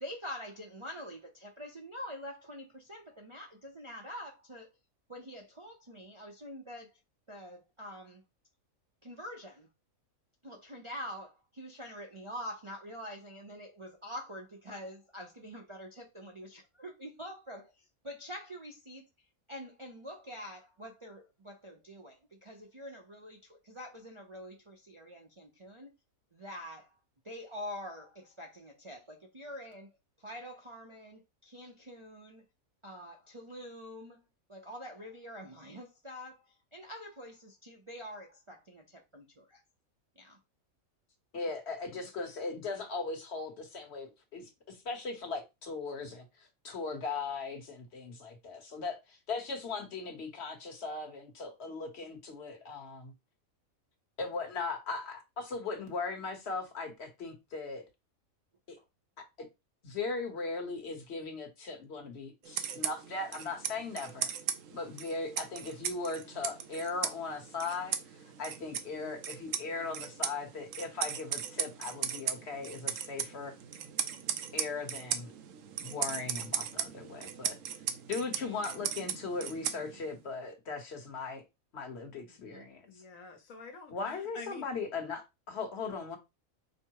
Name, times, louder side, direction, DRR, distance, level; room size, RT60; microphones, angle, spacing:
voice 1, 0.0-4.7 5.1-7.0 7.3-8.2 9.0-9.7 10.4-25.9 26.3-27.0 27.2-32.4 32.8-39.6 40.2-40.4 58.8-58.9 78.4-78.6 82.3-82.7, equal, 35° right, 0.5 m, -46 dB
voice 2, 41.3-53.1 54.2-57.8 58.7-58.8 59.4-59.5 59.8-64.3 64.7-73.5 74.5-75.3 75.8-77.6 78.1-81.4 81.7-82.9 83.9-86.2, left 4 dB, 50° left, 1.2 m, -38 dB
sound 1, 62.4-80.2, right 8 dB, 70° right, 1.0 m, -38 dB
voice 3, 82.8-84.6, left 4 dB, 70° left, 1.2 m, -48 dB
5.1 x 2.1 x 4.6 m
omnidirectional pair, 1.5 m